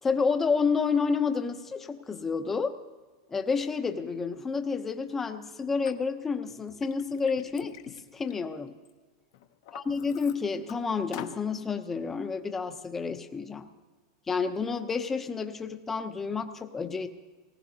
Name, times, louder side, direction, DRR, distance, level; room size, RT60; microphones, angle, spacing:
voice 1, 0.0-2.8 3.3-8.7 9.7-13.7 14.3-17.1, left 5 dB, 10° left, 8 dB, 0.6 m, -30 dB
Liquid, 5.9-6.0 6.5-8.9 9.3-10.7 11.1-11.4, left 12 dB, 55° left, 0.7 m, -46 dB
19.0 x 17.5 x 2.8 m, 1.4 s
supercardioid pair, 170°, 2 cm